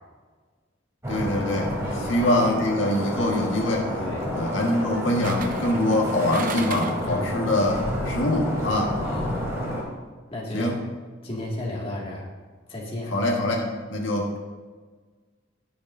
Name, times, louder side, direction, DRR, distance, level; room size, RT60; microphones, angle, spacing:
sound 1, 1.0-9.8, equal, 15° right, 3.3 m, -30 dB
voice 1, 1.1-1.7 2.1-3.9 4.3-7.8 8.0-9.0 10.5-10.7 13.1-14.4, left 1 dB, 85° left, -1 dB, 1.6 m, -24 dB
voice 2, 1.8-2.2 4.0-4.3 7.1-7.3 9.0-9.4 10.3-10.7 11.2-12.3 12.7-13.2, left 1 dB, 30° left, -4 dB, 2.1 m, -33 dB
sound 2, 2.6-2.9 5.2-7.2 7.5-7.6, right 4 dB, 45° right, 0.7 m, -35 dB
20.0 x 6.8 x 2.7 m, 1.4 s
head